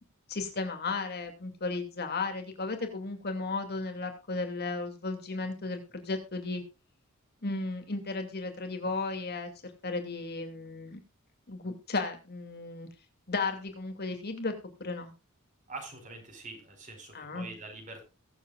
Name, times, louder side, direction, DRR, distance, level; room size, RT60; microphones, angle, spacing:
voice 1, 0.3-6.6 7.4-9.5 9.8-11.0 11.5-12.9 13.3-14.5 14.8-15.1 17.1-17.5, left 3 dB, 50° left, 5 dB, 2.5 m, -34 dB
voice 2, 15.7-18.0, right 3 dB, 40° right, 4 dB, 5.0 m, -44 dB
22.0 x 7.9 x 2.4 m, 0.28 s
head